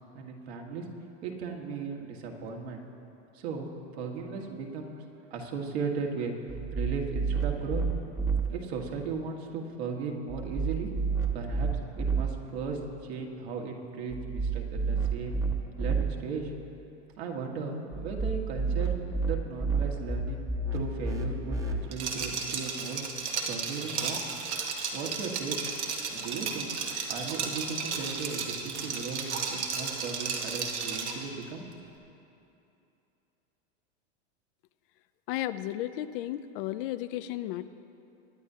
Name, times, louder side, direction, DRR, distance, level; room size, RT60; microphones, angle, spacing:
voice 1, 0.1-0.8 1.2-2.8 3.3-5.0 5.3-6.3 6.7-7.8 8.5-10.9 11.3-11.7 12.0-15.4 15.8-16.5 17.2-18.9 19.2-20.4 20.7-23.0 23.5-24.3 24.9-25.6 26.1-26.8 27.1-31.7, right 5 dB, 70° right, 1 dB, 1.7 m, -36 dB
sound 1, 6.5-8.4 10.3-12.2 14.1-16.0 17.9-21.7, right 4 dB, 10° right, 0.8 m, -30 dB
Liquid, 21.9-31.3, right 5 dB, 85° right, 1.6 m, -34 dB
voice 2, 35.3-37.7, left 14 dB, 55° left, 13 dB, 0.5 m, -34 dB
22.0 x 9.9 x 2.8 m, 2.8 s
hypercardioid pair, 125°, 33 cm